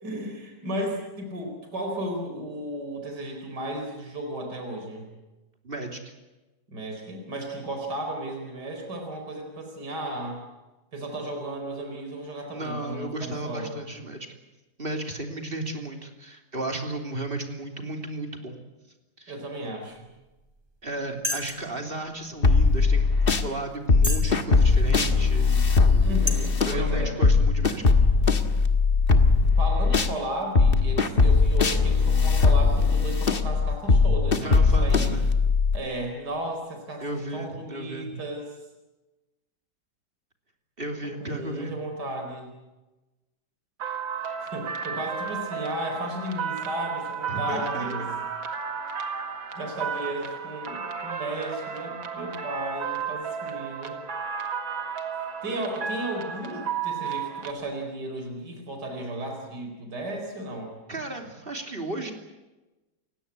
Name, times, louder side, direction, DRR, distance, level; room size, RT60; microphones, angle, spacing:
voice 1, 0.0-5.1 6.7-10.4 10.9-13.8 19.3-20.1 26.0-27.2 29.6-35.2 35.7-37.0 37.3-38.6 41.0-42.5 44.4-48.1 49.5-54.0 55.4-60.7, right 1 dB, 60° right, 3 dB, 4.9 m, -34 dB
voice 2, 5.6-6.1 12.5-14.3 14.8-18.6 19.2-19.3 20.8-23.1 23.4-25.6 26.6-28.0 34.4-35.3 37.0-38.2 40.8-41.7 47.3-48.1 60.9-62.1, right 2 dB, 30° right, 4 dB, 3.2 m, -34 dB
sound 1, 20.4-20.6 21.2-21.7 22.4-22.5 23.1-23.2 24.0-24.3 24.9-25.0 25.7-25.9 26.3-26.4, left 1 dB, 15° right, 2.7 m, -29 dB
sound 2, 22.4-23.5 23.9-30.1 30.6-35.8, left 4 dB, 30° left, 1.5 m, -20 dB
sound 3, 43.8-57.5, right 7 dB, 90° right, 2.7 m, -33 dB
30.0 x 16.5 x 9.7 m, 1.1 s
omnidirectional pair, 2.1 m